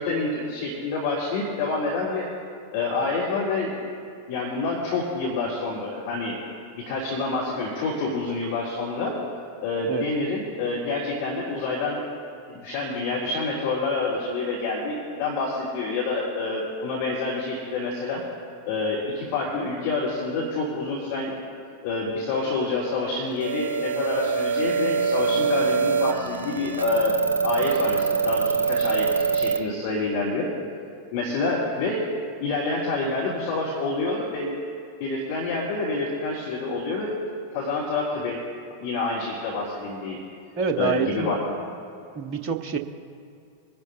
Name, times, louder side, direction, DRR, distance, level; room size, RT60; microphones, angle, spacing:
voice 1, 0.0-2.3 2.7-3.8 4.3-6.4 6.7-9.2 9.6-12.0 12.6-18.2 18.6-21.3 21.8-30.5 31.1-32.1 32.4-34.5 35.0-37.1 37.5-38.4 38.8-40.2 40.7-41.4, left 3 dB, 50° left, -5 dB, 2.7 m, -27 dB
sound 1, 23.4-29.6, right 5 dB, 65° right, 0.8 m, -24 dB
Wind instrument woodwind instrument, 24.6-29.1, left 2 dB, 80° left, 2.4 m, -43 dB
voice 2, 40.6-41.3 41.6-41.7 42.1-42.8, right 6 dB, 35° right, 4 dB, 1.1 m, -27 dB
24.5 x 11.0 x 2.7 m, 2.5 s
figure-of-eight pair, 90°, 0 cm